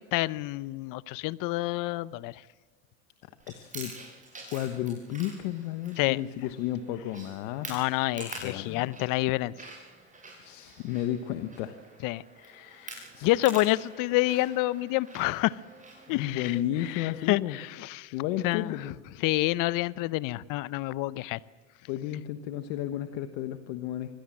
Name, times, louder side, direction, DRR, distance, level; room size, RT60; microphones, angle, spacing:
voice 1, 0.1-2.4 6.0-6.2 7.7-9.5 12.0-12.2 12.5-13.0 13.2-15.6 16.1-18.1 18.4-18.7 19.2-21.4, left 18 dB, 55° left, 19 dB, 0.7 m, -28 dB
Chewing mastication, 3.4-16.5, right 2 dB, 20° right, 7.4 m, -47 dB
voice 2, 3.5-3.9 4.5-7.7 8.4-8.9 10.4-11.8 13.1-13.3 16.1-17.6 18.1-18.9 21.9-24.1, left 12 dB, 70° left, 8 dB, 1.3 m, -33 dB
25.0 x 17.0 x 7.6 m, 1.5 s
supercardioid pair, 100°, 38 cm